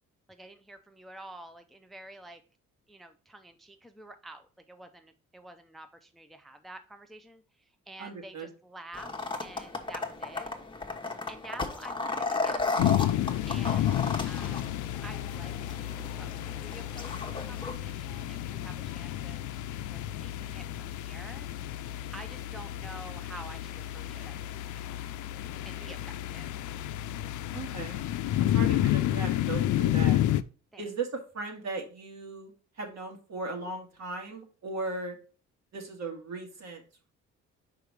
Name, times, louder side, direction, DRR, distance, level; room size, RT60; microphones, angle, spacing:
voice 1, 0.3-2.4 2.9-9.1 9.4-10.5 11.3-12.6 13.5-19.5 19.9-21.5 22.1-24.4 24.6-24.9 25.6-26.5 30.7-30.9, right 1 dB, ahead, 8 dB, 0.6 m, -49 dB
voice 2, 8.0-8.5 27.5-28.0 28.4-30.2 30.8-31.1 31.3-32.5 32.8-35.2 35.7-36.8, right 3 dB, 60° right, 1 dB, 2.2 m, -37 dB
sound 1, 8.9-17.7, left 3 dB, 15° left, 1.0 m, -35 dB
sound 2, 12.8-30.4, left 13 dB, 80° left, 0.5 m, -31 dB
5.1 x 4.9 x 4.7 m, 0.37 s
cardioid pair, 90°, 30 cm